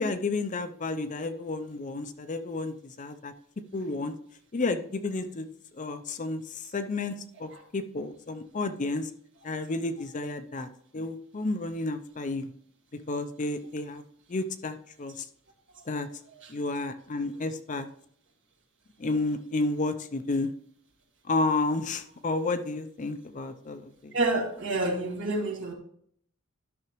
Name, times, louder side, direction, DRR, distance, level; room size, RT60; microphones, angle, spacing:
voice 1, 0.0-3.3 3.7-4.1 4.5-5.5 5.7-9.1 9.4-10.7 10.9-12.5 13.1-14.0 14.3-15.3 15.9-16.1 16.5-17.9 19.0-20.5 21.3-24.1, left 3 dB, 35° left, 10 dB, 0.5 m, -31 dB
voice 2, 24.1-25.7, right 2 dB, 60° right, 1 dB, 1.8 m, -29 dB
12.0 x 5.9 x 3.0 m, 0.65 s
head